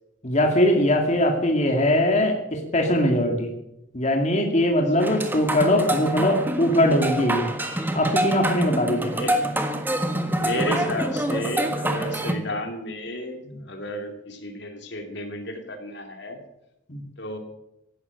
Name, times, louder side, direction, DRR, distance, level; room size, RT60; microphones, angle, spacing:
voice 1, 0.2-3.5 3.9-7.5 7.9-9.1 13.5-13.6 16.9-17.0, left 1 dB, 35° left, 2 dB, 2.2 m, -21 dB
sound 1, 5.0-12.3, right 1 dB, 10° right, 1.6 m, -26 dB
voice 2, 9.1-9.5 10.4-16.4 17.2-17.4, left 1 dB, 60° left, 5 dB, 2.8 m, -32 dB
16.0 x 12.0 x 6.5 m, 0.85 s
head